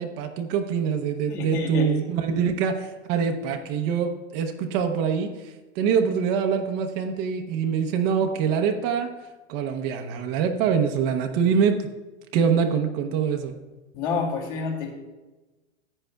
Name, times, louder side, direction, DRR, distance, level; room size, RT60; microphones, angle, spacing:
voice 1, 0.0-9.1 9.5-11.7 12.3-13.5, right 7 dB, 35° right, 5 dB, 0.8 m, -24 dB
voice 2, 1.3-1.9 13.9-14.9, left 5 dB, 45° left, 0 dB, 2.5 m, -28 dB
14.5 x 9.7 x 2.3 m, 1.1 s
supercardioid pair, 150°, 36 cm